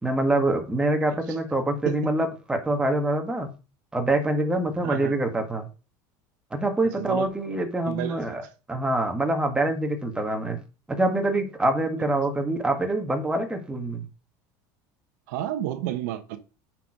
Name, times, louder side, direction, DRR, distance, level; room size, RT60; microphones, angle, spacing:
voice 1, 0.0-3.5 3.9-5.7 6.5-8.4 8.7-10.6 10.9-14.1, right 2 dB, 10° right, 1.7 m, -25 dB
voice 2, 4.8-5.1 7.0-7.3 7.8-8.5 15.3-16.4, right 12 dB, 85° right, 1.1 m, -31 dB
9.0 x 4.7 x 4.9 m
supercardioid pair, 125°, 10 cm